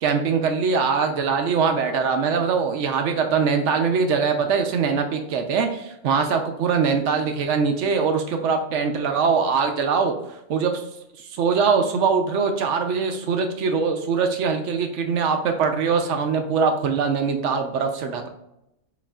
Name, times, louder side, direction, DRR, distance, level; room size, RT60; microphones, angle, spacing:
voice 1, 0.0-10.1 10.5-10.8 11.2-18.3, right 5 dB, 75° right, 5 dB, 0.9 m, -22 dB
6.9 x 2.5 x 2.3 m, 0.83 s
omnidirectional pair, 1.3 m